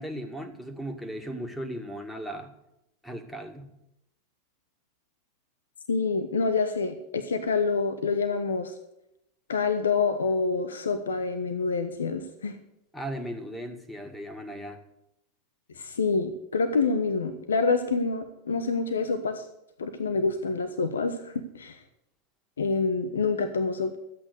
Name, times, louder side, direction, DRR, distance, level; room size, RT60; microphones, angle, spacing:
voice 1, 0.0-2.5 3.0-3.7 12.9-14.8, equal, 5° left, 5 dB, 2.1 m, -37 dB
voice 2, 5.9-8.7 9.5-12.5 15.8-19.4 19.8-21.8 22.6-24.0, left 4 dB, 80° left, 8 dB, 1.0 m, -27 dB
13.0 x 8.7 x 6.7 m, 0.84 s
hypercardioid pair, 95°, 0 cm